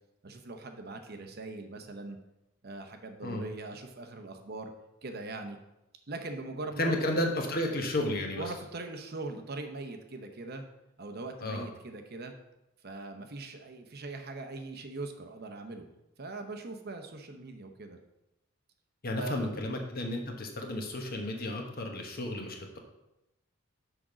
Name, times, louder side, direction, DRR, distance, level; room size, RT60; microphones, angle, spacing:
voice 1, 0.2-2.2 2.6-4.7 5.0-5.6 6.1-6.9 8.4-10.6 11.0-12.3 12.8-15.9 16.2-18.0 19.1-19.6, right 2 dB, 45° right, 6 dB, 0.8 m, -41 dB
voice 2, 6.8-8.4 11.4-11.7 19.0-22.8, left 1 dB, 45° left, 2 dB, 1.2 m, -32 dB
6.3 x 5.2 x 6.1 m, 0.91 s
head